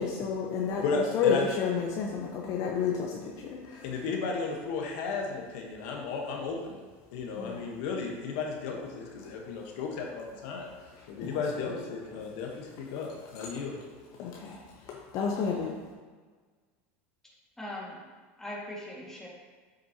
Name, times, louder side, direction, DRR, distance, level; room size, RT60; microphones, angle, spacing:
voice 1, 0.0-3.9 7.3-7.7 9.2-9.3 10.8-11.4 13.0-13.1 13.3-13.5 14.1-15.7, left 6 dB, 50° left, -1 dB, 0.9 m, -31 dB
voice 2, 0.8-1.4 3.8-6.8 7.1-10.7 11.1-13.8, left 4 dB, 70° left, 0 dB, 1.3 m, -34 dB
voice 3, 17.2-18.0 18.4-19.3, left 1 dB, 5° left, -5 dB, 2.0 m, -41 dB
8.0 x 6.6 x 2.9 m, 1.5 s
supercardioid pair, 115°, 7 cm